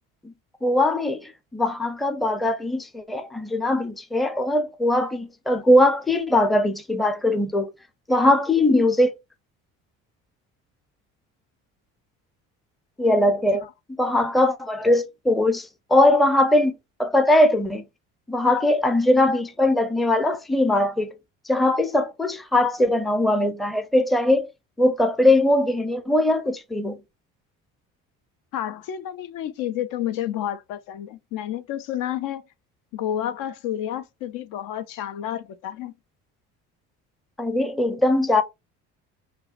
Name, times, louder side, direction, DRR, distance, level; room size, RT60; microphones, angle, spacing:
voice 1, 0.6-7.7 8.1-9.1 13.0-13.7 14.0-17.8 18.3-21.1 21.5-24.5 24.8-27.0 37.4-38.4, left 1 dB, ahead, 0.5 m, -20 dB
voice 2, 28.5-32.5 32.9-35.9, left 11 dB, 65° left, 0.6 m, -30 dB
5.4 x 2.2 x 2.4 m
supercardioid pair, 75°, 35 cm